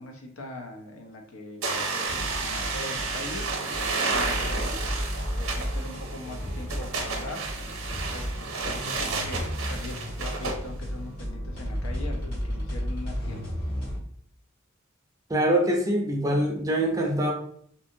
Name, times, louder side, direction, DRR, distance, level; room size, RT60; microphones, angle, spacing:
voice 1, 0.0-3.6 4.1-5.1 5.4-7.8 8.1-13.6, left 2 dB, 80° left, 2 dB, 0.6 m, -41 dB
sound 1, 1.6-10.6, right 4 dB, 80° right, 0.6 m, -31 dB
sound 2, 2.1-14.0, equal, 50° left, 1.3 m, -33 dB
voice 2, 15.3-17.3, right 1 dB, 15° right, 0 dB, 0.4 m, -24 dB
2.7 x 2.6 x 2.6 m, 0.63 s
head